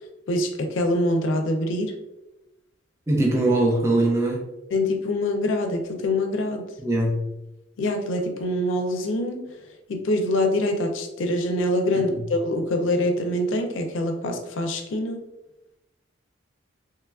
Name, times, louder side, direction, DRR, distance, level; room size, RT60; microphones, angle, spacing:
voice 1, 0.3-2.0 4.7-6.6 7.8-9.5 9.9-15.2, left 1 dB, 70° left, 4 dB, 0.4 m, -25 dB
voice 2, 3.1-4.4 6.8-7.2, right 1 dB, 15° right, -2 dB, 0.4 m, -21 dB
3.0 x 2.3 x 2.3 m, 0.95 s
head